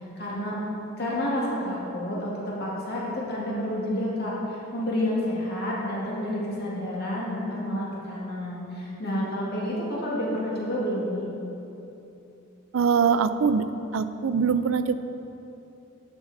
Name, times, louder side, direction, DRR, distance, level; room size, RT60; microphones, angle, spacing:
voice 1, 0.2-0.6 1.0-11.2, left 1 dB, 55° left, -5 dB, 2.1 m, -29 dB
voice 2, 12.7-13.7 13.9-14.9, right 6 dB, 85° right, 12 dB, 0.4 m, -22 dB
12.0 x 5.9 x 4.1 m, 3.0 s
head